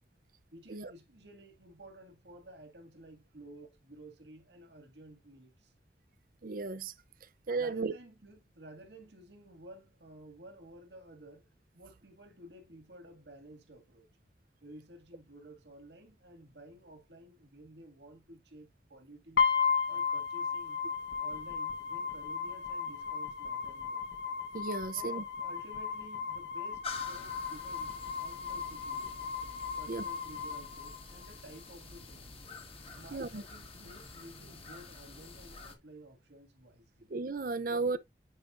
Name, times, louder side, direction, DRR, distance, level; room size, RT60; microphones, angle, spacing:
voice 1, 0.5-5.7 7.6-11.5 11.7-14.1 14.6-19.5 19.9-20.8 21.2-24.1 24.9-29.3 29.8-32.4 32.9-37.1 37.7-38.0, right 1 dB, 75° right, 2.1 m, -53 dB
voice 2, 6.4-6.9 7.5-7.9 24.5-25.2 29.9-30.0 33.1-33.4 37.1-38.0, right 4 dB, 50° right, 0.6 m, -34 dB
sound 1, 19.4-31.4, left 6 dB, 80° left, 1.2 m, -35 dB
sound 2, 26.8-35.8, left 3 dB, 35° left, 1.4 m, -48 dB
9.6 x 5.1 x 2.5 m
head